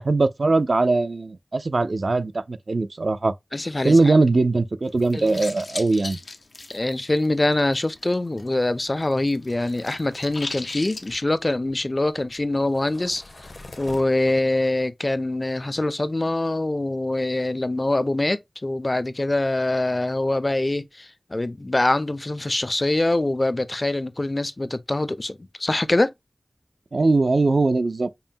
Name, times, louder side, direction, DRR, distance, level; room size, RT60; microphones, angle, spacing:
voice 1, 0.0-3.3 3.8-6.2 26.9-28.1, right 3 dB, 75° right, 0.3 m, -20 dB
voice 2, 3.5-4.1 5.1-5.4 6.7-13.2 13.8-26.1, left 2 dB, 40° left, 0.4 m, -24 dB
sound 1, 4.9-8.6 8.8-11.2, left 3 dB, 90° left, 0.5 m, -38 dB
sound 2, 9.1-14.4, left 2 dB, 75° left, 0.9 m, -47 dB
5.5 x 2.1 x 2.6 m
wide cardioid pair, 40°, 0 cm